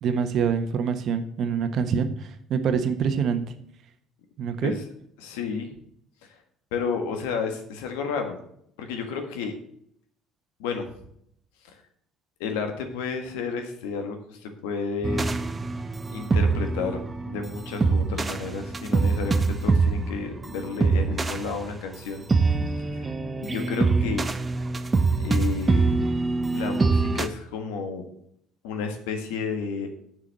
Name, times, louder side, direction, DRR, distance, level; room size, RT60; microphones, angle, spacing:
voice 1, 0.0-3.4 4.4-4.7, right 6 dB, 60° right, 8 dB, 1.3 m, -25 dB
voice 2, 5.2-5.7 6.2-6.3 6.7-8.4 8.8-9.5 10.6-10.9 11.6-11.8 12.4-15.4 16.1-22.2 22.9-23.1 23.4-24.3 25.2-25.9 26.5-28.0 28.6-29.9, left 5 dB, 85° left, 6 dB, 1.7 m, -31 dB
sound 1, 15.0-27.3, right 3 dB, 25° right, 0.8 m, -24 dB
7.2 x 6.7 x 7.5 m, 0.70 s
hypercardioid pair, 70°, 0 cm